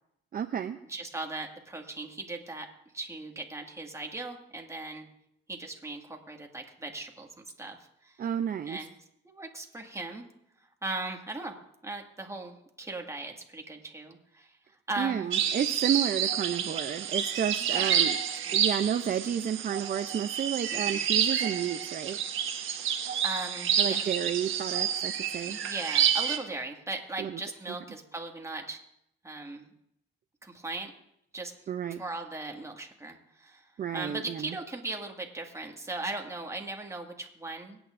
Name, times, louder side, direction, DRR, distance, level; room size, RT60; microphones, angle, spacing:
voice 1, 0.3-0.8 8.2-8.8 15.0-18.2 18.5-22.2 23.8-25.6 27.2-27.4 31.7-32.0 33.8-34.6, right 9 dB, 45° right, 7 dB, 0.6 m, -31 dB
voice 2, 0.9-2.7 2.9-5.1 5.5-7.8 8.0-8.2 8.7-8.9 9.2-10.2 10.8-11.5 11.8-15.3 17.7-17.9 18.5-18.6 20.7-21.0 22.8-22.9 23.2-24.1 25.5-28.8 29.2-29.7 30.4-30.9 31.3-31.5 32.0-37.8, right 2 dB, 15° right, 1 dB, 2.0 m, -38 dB
sound 1, 15.3-26.4, right 9 dB, 85° right, 1.5 m, -29 dB
25.0 x 9.1 x 2.6 m, 0.76 s
cardioid pair, 90°, 20 cm